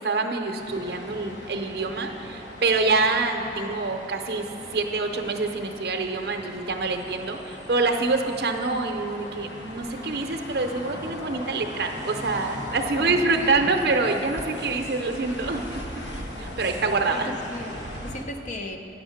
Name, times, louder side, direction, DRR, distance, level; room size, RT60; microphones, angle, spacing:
voice 1, 0.0-15.6 16.4-17.3, right 3 dB, 65° right, 4 dB, 0.6 m, -26 dB
sound 1, 0.6-18.2, left 1 dB, 80° left, 1.1 m, -39 dB
sound 2, 10.2-11.0 11.5-11.7 12.2-12.3 12.7-14.5 14.9-15.1, equal, 15° left, 0.8 m, -41 dB
voice 2, 17.1-18.8, left 1 dB, 45° left, 4 dB, 0.5 m, -36 dB
9.2 x 6.2 x 6.4 m, 2.9 s
head